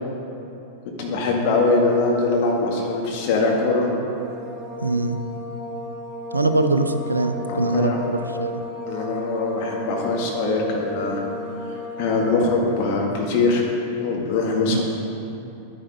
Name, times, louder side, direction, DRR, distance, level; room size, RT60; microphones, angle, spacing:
voice 1, 1.0-3.9 7.5-8.1 8.9-11.2 11.7-13.6 14.0-14.8, left 3 dB, 45° left, -1 dB, 2.2 m, -22 dB
sound 1, 4.1-12.8, left 2 dB, 10° right, 2.9 m, -34 dB
voice 2, 4.8-5.2 6.3-8.6 14.7-14.8, right 2 dB, 80° right, 7 dB, 0.6 m, -22 dB
10.5 x 10.0 x 5.1 m, 2.8 s
figure-of-eight pair, 90°, 0 cm